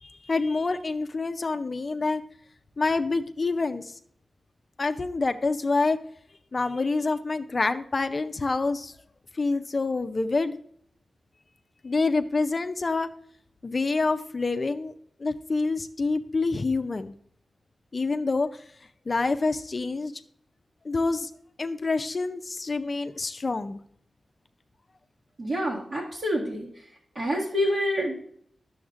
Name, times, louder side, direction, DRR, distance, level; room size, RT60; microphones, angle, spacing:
voice 1, 0.0-2.2 2.8-3.9 4.8-6.0 6.5-8.9 9.3-10.6 11.8-13.1 13.6-14.9 15.2-17.2 17.9-18.6 19.1-20.1 20.8-21.3 21.6-23.8, left 3 dB, 35° left, 8 dB, 0.5 m, -27 dB
voice 2, 25.4-26.7 27.2-28.3, equal, 55° right, -6 dB, 1.7 m, -27 dB
10.5 x 7.0 x 2.5 m, 0.64 s
wide cardioid pair, 125°, 0 cm